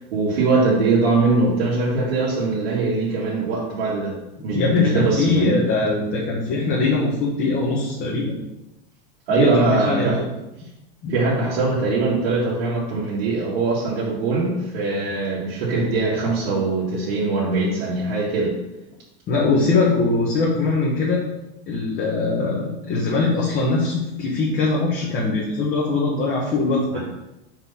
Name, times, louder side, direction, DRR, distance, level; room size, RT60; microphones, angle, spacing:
voice 1, 0.1-4.2 4.4-5.6 9.3-10.2 11.1-18.5, right 3 dB, 85° right, -8 dB, 1.8 m, -21 dB
voice 2, 4.4-8.3 9.3-10.2 11.0-11.1 19.3-21.2 21.7-27.0, left 3 dB, 30° left, -4 dB, 1.1 m, -21 dB
4.5 x 3.9 x 5.4 m, 0.95 s
supercardioid pair, 140°, 29 cm